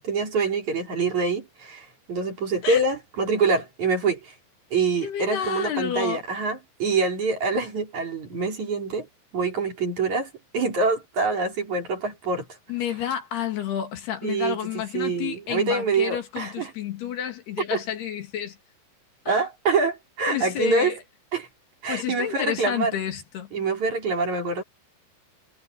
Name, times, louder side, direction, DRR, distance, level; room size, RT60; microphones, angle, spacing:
voice 1, 0.0-4.3 4.7-9.1 9.3-12.5 14.2-16.7 17.7-17.8 19.3-20.9 21.3-21.5 21.8-22.9 23.5-24.6, right 4 dB, 45° right, 5.5 m, -25 dB
voice 2, 5.0-6.2 12.7-18.6 19.3-19.5 20.3-21.0 21.9-23.5, left 9 dB, 70° left, 4.2 m, -30 dB
omnidirectional pair, 5.0 m